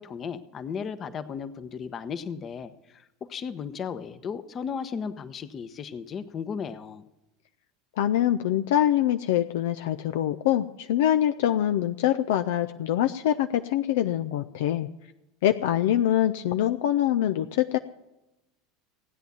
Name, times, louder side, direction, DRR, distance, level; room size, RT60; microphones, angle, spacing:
voice 1, 0.0-7.0, left 6 dB, 35° left, 12 dB, 1.0 m, -35 dB
voice 2, 8.0-14.9 15.4-17.8, left 11 dB, 65° left, 9 dB, 0.5 m, -24 dB
16.0 x 9.2 x 7.0 m, 0.95 s
figure-of-eight pair, 75°, 0 cm